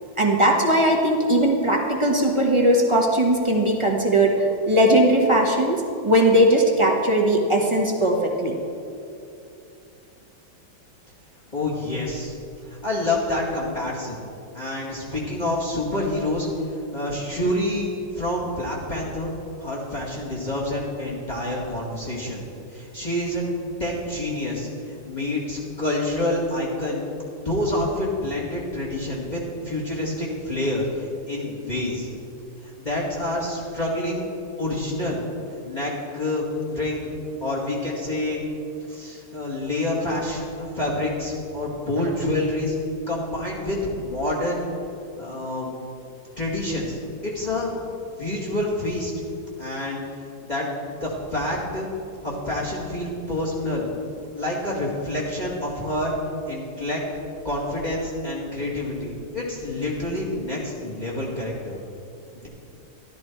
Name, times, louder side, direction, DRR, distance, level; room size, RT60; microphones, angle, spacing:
voice 1, 0.2-8.6, right 1 dB, 20° right, 0 dB, 1.0 m, -19 dB
voice 2, 11.5-12.3 12.7-14.2 14.5-19.3 19.6-22.4 22.7-23.4 23.8-27.0 27.4-32.1 32.6-34.2 34.6-35.2 35.7-36.4 36.7-37.1 37.4-38.4 38.9-42.7 43.1-44.6 45.2-45.7 46.4-47.0 47.2-47.7 48.2-49.1 49.6-50.0 50.4-51.9 52.2-53.9 54.3-56.2 56.5-57.0 57.4-61.8 62.3-62.5, left 1 dB, 20° left, -4 dB, 2.2 m, -27 dB
13.0 x 12.5 x 4.6 m, 2.7 s
omnidirectional pair, 2.1 m